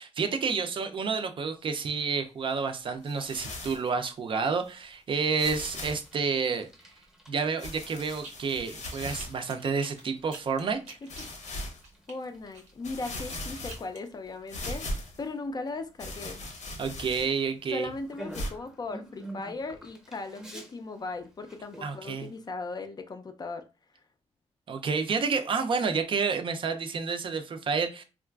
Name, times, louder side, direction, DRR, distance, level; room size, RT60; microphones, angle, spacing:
voice 1, 0.0-6.7 7.3-11.0 16.8-17.9 21.8-22.3 24.7-28.0, right 5 dB, 45° right, 0.4 m, -29 dB
sound 1, 3.1-3.9 4.6-4.7 5.4-6.1 7.6-9.4 10.0-10.1 11.1-11.8 12.4-12.5 12.8-14.1 14.5-15.2 16.0-17.4 18.3-18.5, left 1 dB, 85° left, 0.8 m, -38 dB
Bicycle, 6.0-22.5, right 1 dB, 5° right, 0.7 m, -51 dB
sound 2, 8.1-8.6 8.8-12.2 12.5-14.0, right 3 dB, 85° right, 0.6 m, -48 dB
voice 2, 11.0-11.7 12.1-14.8 15.2-16.4 17.7-23.6, left 3 dB, 35° left, 0.3 m, -38 dB
3.7 x 2.3 x 2.2 m
wide cardioid pair, 145°, 12 cm